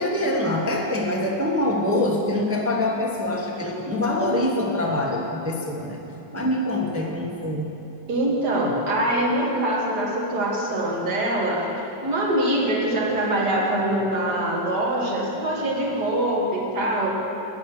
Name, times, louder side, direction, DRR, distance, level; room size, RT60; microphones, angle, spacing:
voice 1, 0.0-6.0 6.3-7.7, left 1 dB, 15° right, -1 dB, 0.6 m, -24 dB
voice 2, 8.1-11.7 12.0-17.2, right 1 dB, 60° right, -3 dB, 2.4 m, -24 dB
13.0 x 9.3 x 6.0 m, 2.9 s
omnidirectional pair, 2.0 m